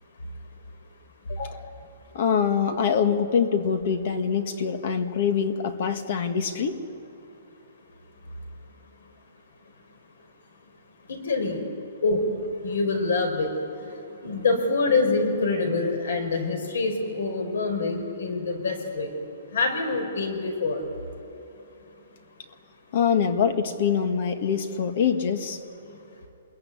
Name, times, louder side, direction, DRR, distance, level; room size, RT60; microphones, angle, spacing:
voice 1, 1.3-1.7 2.1-6.8 22.9-25.6, left 7 dB, 40° left, 8 dB, 1.8 m, -24 dB
voice 2, 11.1-11.6 12.0-12.2 12.6-13.5 14.2-19.1 19.5-20.8, left 3 dB, 75° left, 6 dB, 5.1 m, -25 dB
26.5 x 22.0 x 9.7 m, 2.9 s
hypercardioid pair, 180°, 0 cm